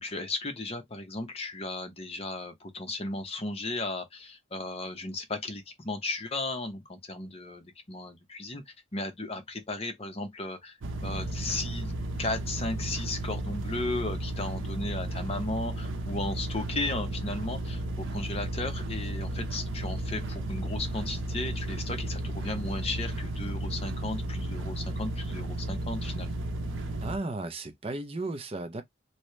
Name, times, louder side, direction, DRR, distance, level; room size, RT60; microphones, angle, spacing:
voice 1, 0.0-11.9 12.2-26.4, left 2 dB, 30° left, 0.8 m, -35 dB
sound 1, 10.8-27.2, right 1 dB, 85° right, 0.7 m, -34 dB
voice 2, 27.0-28.8, right 2 dB, 30° right, 0.5 m, -34 dB
3.1 x 2.8 x 3.1 m
head